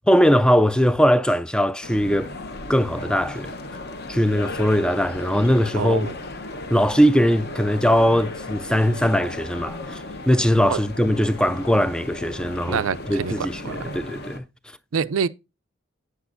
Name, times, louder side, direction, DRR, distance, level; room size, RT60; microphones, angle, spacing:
voice 1, 0.1-2.3 2.7-3.5 4.1-6.1 6.7-14.4, equal, 5° left, 0.3 m, -20 dB
sound 1, 1.8-14.4, left 2 dB, 45° left, 1.1 m, -35 dB
voice 2, 5.8-6.2 10.7-10.8 12.7-14.0 14.9-15.3, right 6 dB, 70° right, 0.4 m, -26 dB
8.6 x 8.1 x 2.6 m
head